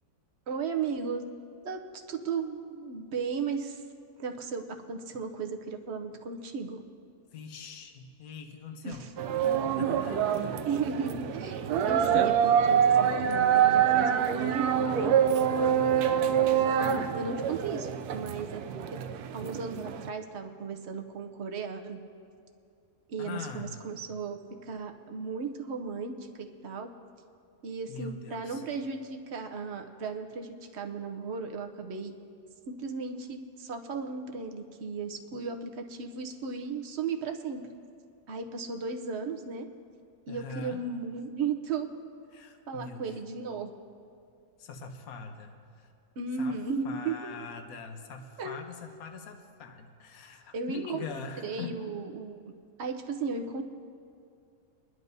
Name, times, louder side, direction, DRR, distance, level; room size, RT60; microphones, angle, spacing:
voice 1, 0.5-1.2 1.6-1.8 2.1-3.8 4.2-6.8 8.8-9.1 10.6-15.1 16.5-18.6 18.9-19.0 19.3-22.0 23.1-26.9 27.6-32.1 32.7-37.6 38.3-39.7 40.3-41.9 42.7-43.7 46.2-47.3 48.4-48.6 50.5-51.1 51.4-52.5 52.8-53.6, right 5 dB, 55° right, 4 dB, 0.9 m, -35 dB
voice 2, 7.3-9.1 9.7-10.6 15.6-16.2 23.2-23.7 27.9-28.6 40.3-40.9 42.3-43.2 44.6-45.9 46.4-46.6 46.8-51.8, left 4 dB, 70° left, 5 dB, 1.3 m, -43 dB
sound 1, 9.2-20.1, right 8 dB, 85° right, 1.1 m, -26 dB
23.0 x 11.0 x 2.7 m, 2.5 s
omnidirectional pair, 1.6 m